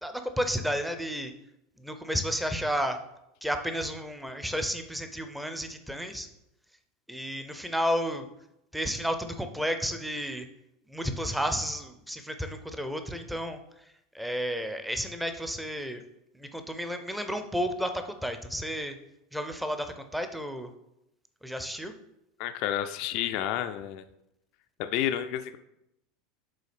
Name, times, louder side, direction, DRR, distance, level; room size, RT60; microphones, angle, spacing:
voice 1, 0.0-1.3 1.8-3.0 3.4-6.3 7.1-8.3 8.7-10.5 10.9-13.6 14.1-16.0 16.3-19.0 19.3-20.7 21.4-21.9, equal, 5° right, 8 dB, 0.6 m, -32 dB
voice 2, 22.4-24.0 24.8-25.6, left 11 dB, 50° left, 9 dB, 0.3 m, -30 dB
8.2 x 3.7 x 3.3 m, 0.85 s
figure-of-eight pair, 80°, 0 cm